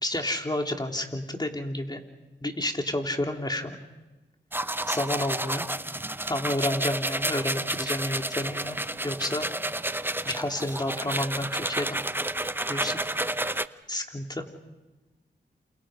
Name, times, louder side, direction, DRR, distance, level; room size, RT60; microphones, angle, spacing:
voice 1, 0.0-2.0 2.4-3.8 4.9-5.7 6.3-8.8 9.0-9.5 10.3-11.9 12.7-13.0 13.9-14.4, left 1 dB, 20° left, 3 dB, 3.5 m, -30 dB
sound 1, 4.5-13.7, right 1 dB, 10° right, 0.8 m, -30 dB
28.5 x 28.5 x 5.2 m, 1.1 s
cardioid pair, 50°, 19 cm